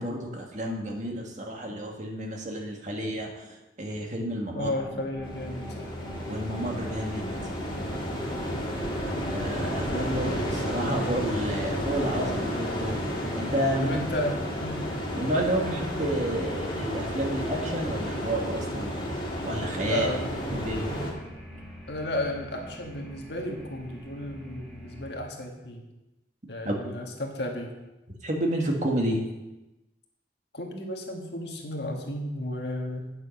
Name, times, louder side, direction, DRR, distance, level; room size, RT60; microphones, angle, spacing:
voice 1, 0.0-4.7 6.3-7.3 9.3-14.0 15.1-18.9 19.4-20.1 20.5-21.0 26.6-26.9 28.2-29.2, right 1 dB, 40° right, 1 dB, 1.6 m, -30 dB
voice 2, 4.5-5.9 8.5-8.8 9.1-9.3 13.8-14.9 15.6-15.8 19.8-20.3 20.9-21.1 21.9-25.8 26.5-27.7 30.5-33.1, left 1 dB, 65° left, 1 dB, 1.7 m, -33 dB
sound 1, 4.7-14.0, left 1 dB, 15° right, 2.1 m, -41 dB
sound 2, 5.1-25.1, equal, ahead, 1.8 m, -44 dB
sound 3, 5.2-21.1, equal, 30° left, 2.2 m, -32 dB
9.0 x 6.7 x 6.5 m, 1.0 s
head